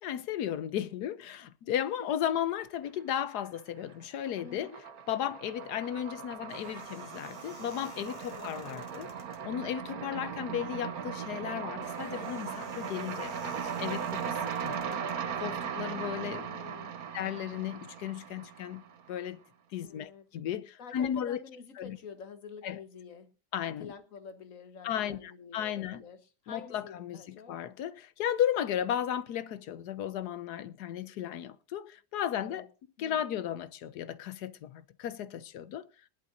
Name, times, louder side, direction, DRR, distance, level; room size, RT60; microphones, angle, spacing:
voice 1, 0.0-4.7 5.1-9.1 9.4-14.4 14.6-14.8 15.3-16.5 17.1-18.8 19.1-19.4 19.7-21.4 21.8-22.0 22.6-22.8 23.5-23.9 24.8-26.0 26.5-27.2 27.5-32.7 33.0-35.9, left 10 dB, 70° left, 1.3 m, -35 dB
voice 2, 1.6-2.1 4.4-4.8 8.2-9.0 10.0-10.3 14.6-15.1 15.9-17.0 19.8-20.3 20.8-23.3 23.8-27.6 32.3-32.7 33.0-33.4, left 5 dB, 50° left, 1.6 m, -49 dB
sound 1, 2.9-3.6 3.9-19.1, right 7 dB, 60° right, 1.5 m, -38 dB
sound 2, 6.0-15.9, left 2 dB, 25° left, 1.8 m, -56 dB
20.0 x 11.5 x 2.6 m
omnidirectional pair, 1.8 m